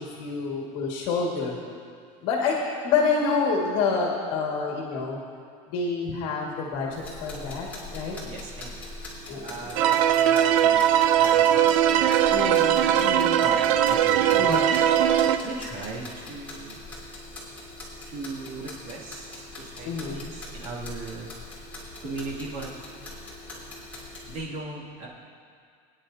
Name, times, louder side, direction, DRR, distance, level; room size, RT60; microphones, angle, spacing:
voice 1, 0.0-1.6 2.2-2.6 2.8-5.2 5.7-7.7 7.9-8.2 9.3-9.7 12.3-13.4 14.4-14.6 19.9-20.2, left 4 dB, 60° left, -2 dB, 2.0 m, -27 dB
sound 1, 6.9-24.4, left 2 dB, 10° left, 2.9 m, -41 dB
voice 2, 8.2-8.8 9.4-12.5 12.8-16.8 18.1-21.3 22.0-22.7 24.3-25.1, right 3 dB, 40° right, -4 dB, 2.5 m, -38 dB
sound 2, 9.8-15.4, right 10 dB, 70° right, 0.6 m, -20 dB
22.5 x 10.0 x 2.8 m, 2.2 s
cardioid pair, 170°, 17 cm